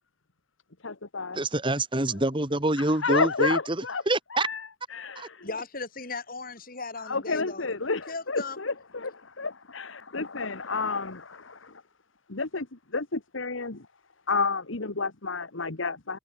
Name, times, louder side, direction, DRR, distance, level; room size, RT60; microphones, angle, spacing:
voice 1, 0.8-1.4 2.8-4.0 4.3-5.5 7.1-11.7 12.3-13.9 14.3-16.2, left 4 dB, 90° left, 1.8 m, -31 dB
voice 2, 1.3-3.8 4.1-4.5 5.2-5.3, right 2 dB, 25° right, 2.6 m, -26 dB
voice 3, 5.4-7.7 8.1-8.6, left 3 dB, 45° left, 6.0 m, -37 dB
head